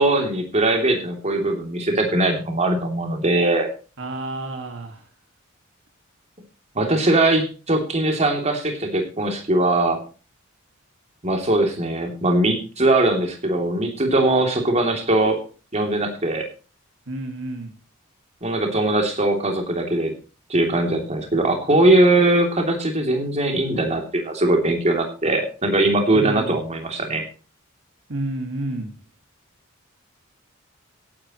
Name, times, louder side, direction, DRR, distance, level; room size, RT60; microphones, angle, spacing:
voice 1, 0.0-3.7 6.7-10.0 11.2-15.4 15.7-16.4 18.4-20.1 20.5-27.2, right 2 dB, 30° right, 3 dB, 3.0 m, -20 dB
voice 2, 4.0-5.0 17.1-17.8 26.1-26.6 28.1-28.9, right 1 dB, 65° right, 4 dB, 2.0 m, -30 dB
17.0 x 10.0 x 3.1 m, 0.35 s
head